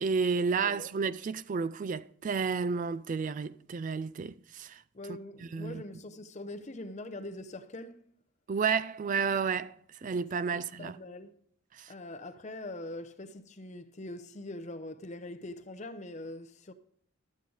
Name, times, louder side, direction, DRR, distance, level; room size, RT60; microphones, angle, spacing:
voice 1, 0.0-4.8 5.1-5.8 8.5-9.8 10.0-11.0 11.7-11.9, right 5 dB, 35° right, 0.3 m, -31 dB
voice 2, 4.9-8.1 10.5-11.3 11.9-16.7, left 1 dB, 35° left, 0.7 m, -43 dB
12.5 x 8.6 x 3.9 m
head